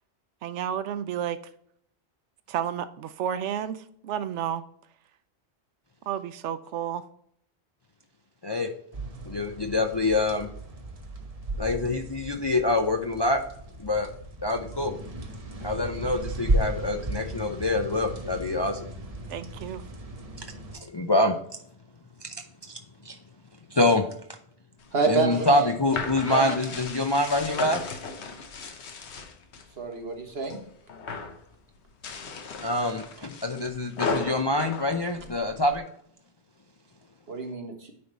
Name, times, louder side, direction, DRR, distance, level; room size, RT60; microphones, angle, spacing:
voice 1, 0.4-1.4 2.5-4.6 6.1-7.0 19.3-19.8, right 9 dB, 90° right, 12 dB, 0.9 m, -31 dB
sound 1, 8.9-20.8, right 1 dB, 35° right, 0.9 m, -35 dB
voice 2, 9.3-10.5 11.6-13.4 13.8-14.1 14.4-14.9 15.6-18.9 20.9-21.4 22.2-22.3 22.7-22.8 23.0-23.2 23.7-24.1 25.1-27.8 32.6-35.8, left 2 dB, 35° left, 4 dB, 0.4 m, -25 dB
sound 2, 24.8-29.7 30.1-30.6 30.9-31.4 31.9-35.8, left 4 dB, 75° left, 1.2 m, -35 dB
voice 3, 24.9-25.7 26.3-26.5 29.8-30.6 34.1-34.2 37.3-37.9, right 4 dB, 65° right, 3 dB, 1.5 m, -28 dB
9.5 x 3.5 x 4.0 m, 0.68 s
omnidirectional pair, 1.2 m